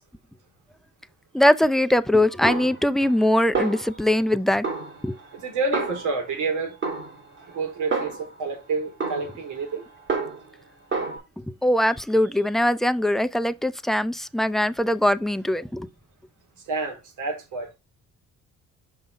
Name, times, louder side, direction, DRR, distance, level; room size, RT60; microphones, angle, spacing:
voice 1, 1.3-4.7 5.0-5.1 11.6-15.9, left 1 dB, ahead, 0.5 m, -21 dB
Snare drum, 2.5-3.3 3.5-4.3 4.6-6.4 6.8-8.5 9.0-10.6 10.9-11.2, right 4 dB, 40° right, 3.3 m, -30 dB
voice 2, 5.3-6.8 7.5-9.8 16.7-17.8, right 3 dB, 80° right, 3.8 m, -29 dB
5.6 x 5.4 x 4.6 m
cardioid pair, 90°, 30 cm